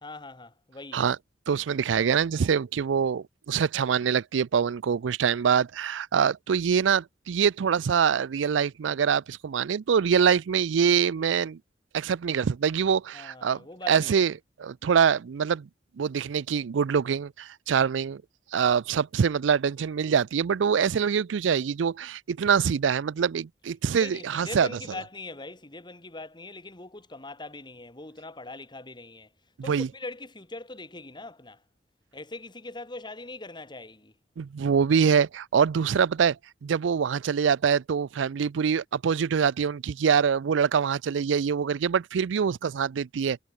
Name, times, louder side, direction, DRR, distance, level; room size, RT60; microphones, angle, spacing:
voice 1, 0.0-1.0 13.1-14.3 24.0-29.3 29.6-31.6 32.1-34.1, left 2 dB, 25° left, 3.0 m, -41 dB
voice 2, 1.5-11.6 11.9-13.6 13.9-14.3 14.6-15.7 16.0-18.2 18.5-24.7 29.7-29.9 34.4-36.4 36.6-43.4, right 7 dB, 90° right, 0.4 m, -24 dB
head